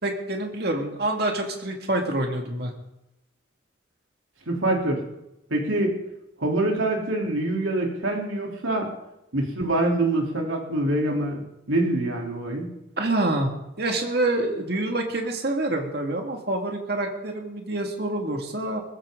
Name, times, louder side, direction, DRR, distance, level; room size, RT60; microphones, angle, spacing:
voice 1, 0.0-2.7 13.0-13.5 13.8-18.8, right 2 dB, 55° right, 2 dB, 2.1 m, -26 dB
voice 2, 4.5-5.0 5.5-6.0 6.4-8.9 9.3-11.4 11.7-12.7, right 1 dB, 85° right, 0 dB, 3.3 m, -25 dB
20.5 x 14.5 x 3.8 m, 0.89 s
head